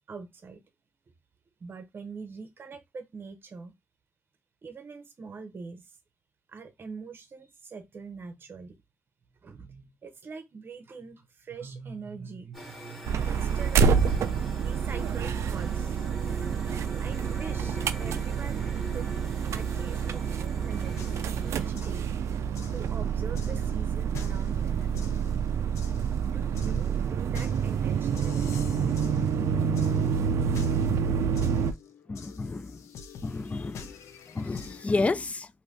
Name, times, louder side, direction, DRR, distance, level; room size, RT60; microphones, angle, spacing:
voice 1, 0.1-0.6 1.6-3.7 4.6-6.0 6.5-8.8 9.4-14.1 14.3-18.7 18.9-19.1 19.5-22.3 22.7-24.9 25.9-28.5, right 5 dB, 45° right, 0.7 m, -44 dB
sound 1, 12.5-21.7, equal, 5° left, 1.2 m, -43 dB
sound 2, 13.1-31.7, right 7 dB, 75° right, 0.3 m, -28 dB
sound 3, 21.0-35.0, left 6 dB, 85° left, 0.4 m, -47 dB
voice 2, 32.1-32.8 33.2-33.9 34.3-35.5, left 3 dB, 30° left, 0.4 m, -31 dB
2.6 x 2.6 x 3.4 m
cardioid pair, 75°, 5 cm